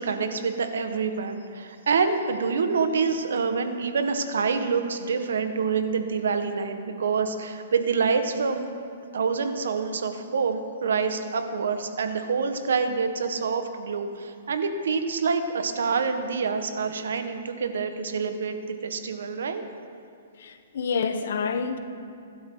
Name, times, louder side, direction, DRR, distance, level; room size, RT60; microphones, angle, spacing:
voice 1, 0.0-8.7 9.1-18.6 18.8-19.6, right 5 dB, 80° right, 7 dB, 1.6 m, -26 dB
voice 2, 20.4-21.8, left 5 dB, 65° left, 9 dB, 1.3 m, -28 dB
22.5 x 12.0 x 4.0 m, 2.5 s
hypercardioid pair, 155°, 0 cm